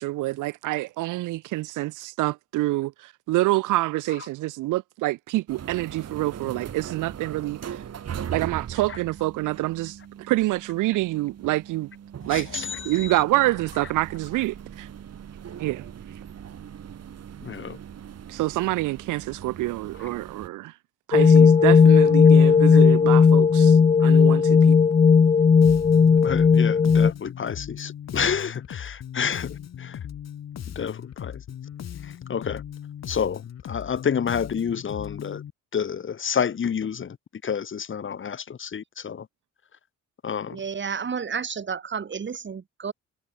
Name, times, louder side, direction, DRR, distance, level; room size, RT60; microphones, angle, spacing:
voice 1, 0.0-7.8 8.3-11.9 12.3-14.9 15.6-15.9 18.3-20.7 21.1-23.8 24.0-24.8, right 18 dB, 85° right, 0.6 m, -27 dB
sound 1, 5.5-20.5, right 9 dB, 55° right, 3.2 m, -40 dB
voice 2, 12.3-13.2 17.4-17.8 20.0-20.1 24.0-24.1 26.2-30.0 30.7-31.4 32.0-32.6 33.1-35.4 35.7-37.2 37.4-39.3 40.2-40.6, left 7 dB, 40° left, 1.5 m, -29 dB
sound 2, 21.1-27.1, left 6 dB, 25° left, 0.6 m, -15 dB
Bass guitar, 25.6-35.5, left 9 dB, 60° left, 2.8 m, -38 dB
voice 3, 40.5-42.9, right 6 dB, 40° right, 2.3 m, -31 dB
cardioid pair, 90°, 30 cm